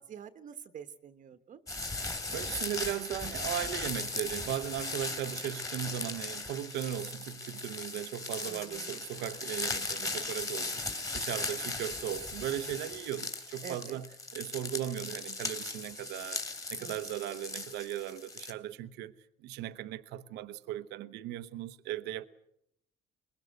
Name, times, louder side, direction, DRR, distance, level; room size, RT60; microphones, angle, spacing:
voice 1, 0.0-1.6 8.4-9.0 11.3-11.7 13.6-14.0 16.8-17.0, right 7 dB, 50° right, 1.2 m, -47 dB
sound 1, 1.7-18.5, left 3 dB, 20° left, 3.3 m, -38 dB
voice 2, 2.3-16.4 16.7-19.1 19.4-22.3, right 12 dB, 90° right, 0.9 m, -37 dB
23.5 x 21.5 x 7.9 m
cardioid pair, 110°, 17 cm